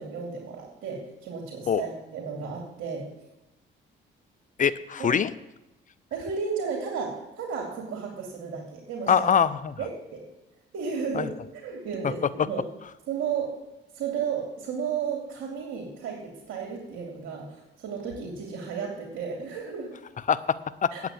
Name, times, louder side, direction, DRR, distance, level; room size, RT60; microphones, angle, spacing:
voice 1, 0.0-3.1 5.0-5.1 6.1-9.3 9.8-10.2 10.7-11.3 11.6-12.6 13.1-13.5 13.9-19.9 20.9-21.0, right 6 dB, 85° right, 0 dB, 2.6 m, -33 dB
voice 2, 4.6-5.3 9.1-9.7 11.1-11.3 12.0-12.1 20.3-20.9, left 7 dB, 40° left, 15 dB, 0.6 m, -23 dB
9.0 x 8.3 x 8.4 m, 0.94 s
cardioid pair, 90°, 20 cm